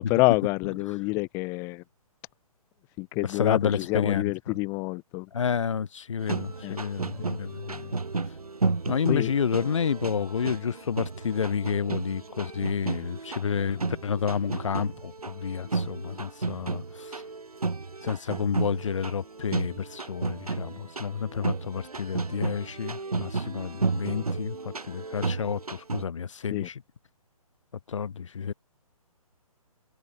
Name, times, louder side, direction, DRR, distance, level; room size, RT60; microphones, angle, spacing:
voice 1, 0.0-1.8 3.0-5.3 6.6-6.8 9.1-9.3 26.5-26.7, left 26 dB, 15° left, 0.5 m, -27 dB
voice 2, 3.3-4.3 5.3-8.0 8.9-17.2 18.0-26.7 27.9-28.5, left 7 dB, 55° left, 1.5 m, -30 dB
sound 1, 6.2-26.1, right 3 dB, 75° right, 1.5 m, -33 dB
figure-of-eight pair, 135°, 19 cm